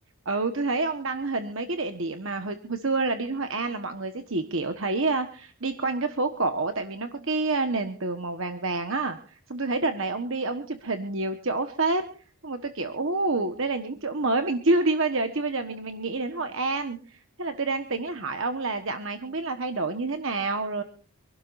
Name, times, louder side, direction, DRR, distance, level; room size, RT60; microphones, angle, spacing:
voice 1, 0.2-12.0 12.4-20.8, right 3 dB, 60° right, 7 dB, 1.3 m, -28 dB
26.5 x 12.0 x 2.6 m, 0.41 s
head